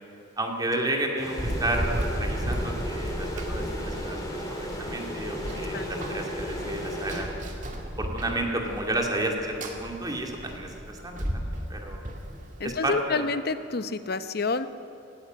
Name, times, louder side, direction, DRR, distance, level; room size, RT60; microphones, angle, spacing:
voice 1, 0.4-7.3 8.0-11.4 11.7-12.0 12.6-13.2, right 1 dB, 20° right, 1 dB, 2.4 m, -31 dB
sound 1, 1.2-7.8, equal, 20° left, 3.8 m, -35 dB
Run, 1.4-12.8, equal, 40° right, 2.2 m, -34 dB
voice 2, 12.6-14.7, left 4 dB, 55° left, 12 dB, 0.9 m, -28 dB
17.0 x 17.0 x 9.2 m, 2.9 s
head